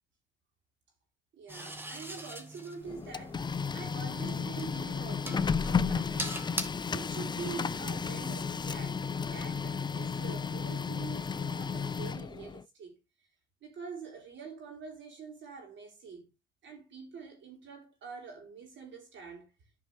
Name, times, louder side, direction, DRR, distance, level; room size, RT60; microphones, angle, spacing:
voice 1, 1.3-6.5 6.9-13.0 13.6-16.3 16.6-19.5, right 5 dB, 70° right, 4.3 m, -45 dB
sound 1, 1.5-6.6, right 1 dB, 10° right, 1.8 m, -42 dB
Printer, 2.8-12.6, left 5 dB, 20° left, 0.4 m, -33 dB
10.5 x 5.5 x 3.5 m
cardioid pair, 90°, 20 cm